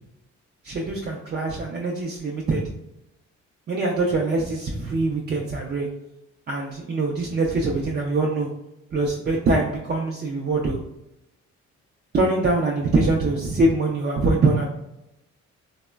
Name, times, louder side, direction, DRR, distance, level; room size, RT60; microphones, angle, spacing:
voice 1, 0.6-2.6 3.7-5.9 6.5-8.5 8.9-10.8 12.1-14.7, right 2 dB, 35° right, -2 dB, 0.4 m, -23 dB
3.0 x 2.0 x 2.2 m, 0.87 s
cardioid pair, 90°, 30 cm